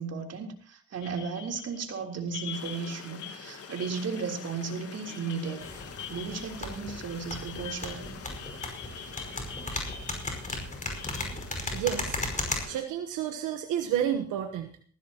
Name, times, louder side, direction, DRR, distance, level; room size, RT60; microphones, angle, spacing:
voice 1, 0.0-5.7 6.1-8.1, right 5 dB, 55° right, 1 dB, 3.7 m, -35 dB
sound 1, 1.0-12.7, left 8 dB, 85° left, 2.5 m, -45 dB
Stream, 2.5-12.9, left 6 dB, 50° left, 1.8 m, -47 dB
sound 2, 5.6-12.6, left 2 dB, 25° left, 5.3 m, -36 dB
voice 2, 11.7-12.2 12.7-14.8, right 10 dB, 90° right, 5 dB, 1.3 m, -30 dB
19.5 x 16.0 x 3.0 m, 0.44 s
cardioid pair, 90°, 30 cm